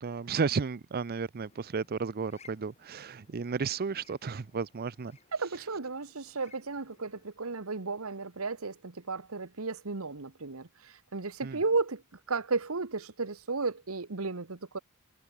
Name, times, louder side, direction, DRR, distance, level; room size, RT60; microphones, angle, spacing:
voice 1, 0.0-5.1 11.4-11.6, right 5 dB, 45° right, 0.5 m, -33 dB
sound 1, 1.3-7.3, left 4 dB, 30° left, 5.4 m, -62 dB
voice 2, 5.3-12.0 12.3-14.8, right 4 dB, 80° right, 1.3 m, -34 dB
head